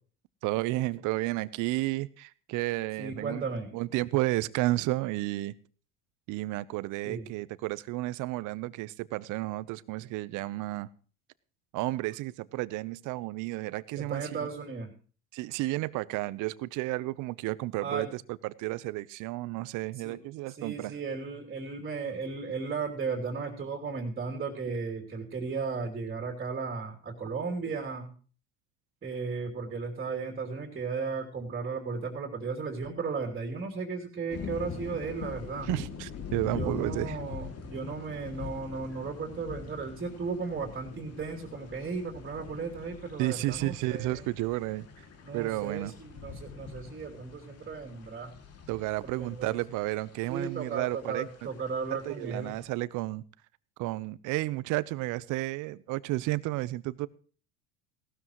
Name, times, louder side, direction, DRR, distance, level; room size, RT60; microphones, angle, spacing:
voice 1, 0.4-3.5 3.7-5.5 6.3-10.9 11.7-14.5 15.3-20.9 35.6-37.2 43.2-44.9 45.3-45.9 48.7-51.3 51.9-53.2 53.8-57.1, right 19 dB, 60° right, 0.8 m, -32 dB
voice 2, 3.0-3.7 7.0-7.3 13.9-14.9 17.8-18.1 20.0-20.2 20.6-28.1 29.0-35.7 36.5-44.3 45.2-48.3 49.0-49.6 50.2-52.6, right 4 dB, 25° right, 2.9 m, -35 dB
sound 1, 34.3-52.6, left 5 dB, 45° left, 2.5 m, -44 dB
17.5 x 13.0 x 3.1 m
supercardioid pair, 90°, 35 cm